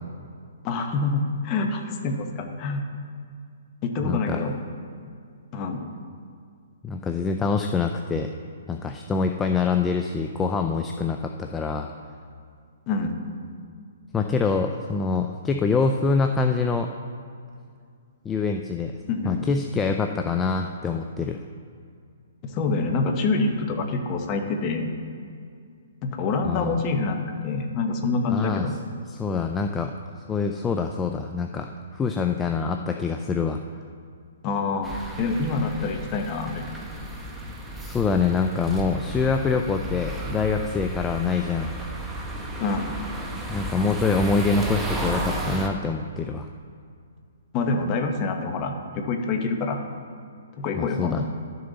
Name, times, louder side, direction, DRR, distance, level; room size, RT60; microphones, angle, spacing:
voice 1, 0.6-2.8 3.8-4.5 5.5-5.9 12.9-13.2 19.1-19.5 22.4-24.9 26.0-28.7 34.4-36.6 42.6-42.9 47.5-49.8 50.6-51.2, left 3 dB, 30° left, 4 dB, 1.0 m, -26 dB
voice 2, 4.0-4.4 6.8-8.3 8.7-11.9 14.1-16.9 18.2-18.9 19.2-21.4 26.4-26.8 28.3-28.7 29.1-29.9 30.3-33.6 37.9-41.7 43.5-46.5 50.7-51.2, left 4 dB, 10° left, 4 dB, 0.4 m, -25 dB
sound 1, 34.8-45.7, right 1 dB, 5° right, 0.9 m, -33 dB
12.0 x 6.6 x 4.0 m, 2.3 s
hypercardioid pair, 155°, 0 cm